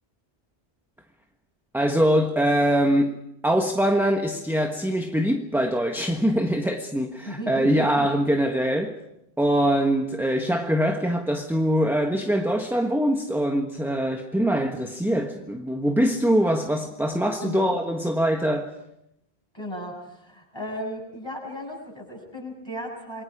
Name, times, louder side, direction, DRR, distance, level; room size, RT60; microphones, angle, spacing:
voice 1, 1.7-9.0 9.4-18.7, equal, ahead, 1.3 m, -23 dB
voice 2, 7.3-8.1 17.4-17.8 19.5-23.2, equal, 25° left, 7.8 m, -35 dB
28.0 x 24.0 x 5.0 m
omnidirectional pair, 1.1 m